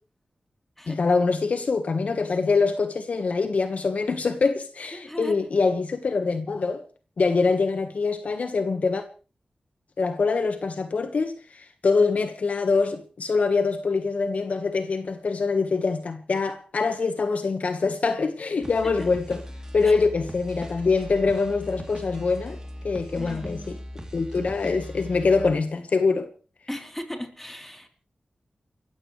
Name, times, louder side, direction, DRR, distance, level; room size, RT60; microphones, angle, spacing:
voice 1, 0.9-6.8 7.2-9.0 10.0-19.4 19.7-22.6 22.8-23.7 24.1-26.3, left 4 dB, 65° left, 1.4 m, -24 dB
voice 2, 4.9-5.4 19.0-19.1 19.9-20.0 23.2-23.8 26.7-27.9, equal, 10° left, 3.7 m, -37 dB
sound 1, 18.6-25.6, equal, 25° right, 3.2 m, -39 dB
29.0 x 15.0 x 3.3 m
wide cardioid pair, 80°, 3 cm